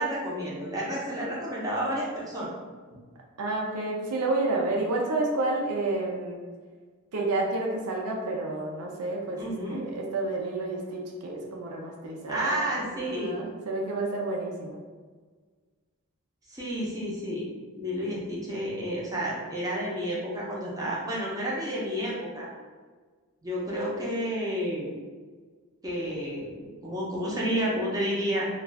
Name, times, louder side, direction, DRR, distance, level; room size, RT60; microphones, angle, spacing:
voice 1, 0.0-2.5 9.4-9.8 12.3-13.4 16.5-22.5 23.4-24.9 25.8-28.5, equal, 15° right, -5 dB, 0.6 m, -30 dB
voice 2, 3.4-6.4 7.1-9.4 9.7-12.7 12.9-14.8, right 2 dB, 80° right, 0 dB, 0.5 m, -30 dB
2.4 x 2.3 x 3.3 m, 1.5 s
head